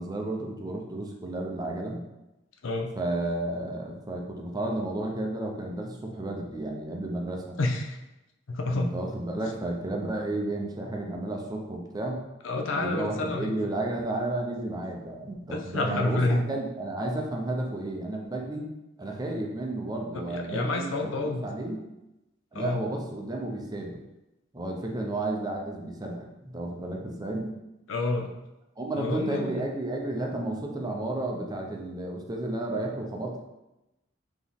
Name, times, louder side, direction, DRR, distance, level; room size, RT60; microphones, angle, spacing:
voice 1, 0.0-2.0 3.0-7.6 8.7-12.2 12.8-18.7 19.0-21.8 22.5-23.9 24.5-27.5 28.8-33.4, right 2 dB, 20° right, 1 dB, 0.6 m, -32 dB
voice 2, 7.6-8.0 8.5-8.9 12.4-13.6 15.5-16.4 20.3-21.4 22.5-22.8 27.9-28.3 28.9-29.6, left 2 dB, 75° left, 3 dB, 0.5 m, -29 dB
4.2 x 3.0 x 3.5 m, 0.96 s
head